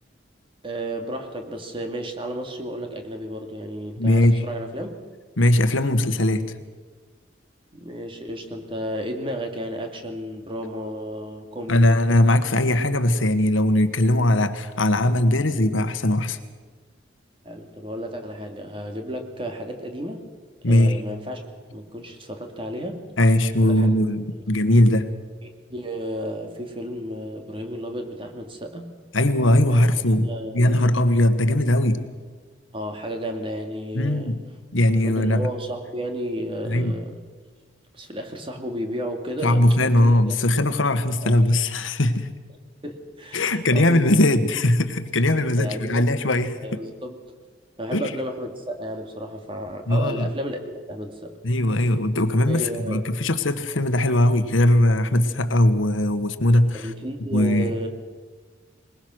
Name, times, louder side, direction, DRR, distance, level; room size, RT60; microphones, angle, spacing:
voice 1, 0.6-5.0 7.7-12.0 17.4-20.2 20.7-21.5 21.7-23.1 23.6-23.9 24.2-24.3 25.4-29.0 29.7-29.8 30.2-30.9 32.7-34.4 35.0-37.2 37.9-40.3 41.2-41.3 42.8-44.0 45.6-46.1 46.6-47.2 47.8-50.6 50.9-51.4 52.5-53.2 56.7-57.9, equal, 25° right, 4 dB, 2.2 m, -32 dB
voice 2, 4.0-4.4 5.4-6.5 11.7-16.4 20.6-21.0 23.2-25.1 29.1-32.0 33.9-34.4 34.7-35.5 36.7-36.9 39.4-42.3 43.3-46.6 47.9-48.1 49.9-50.2 51.4-56.9 57.3-57.7, left 1 dB, 90° left, 11 dB, 1.4 m, -20 dB
21.0 x 20.5 x 6.3 m, 1.4 s
head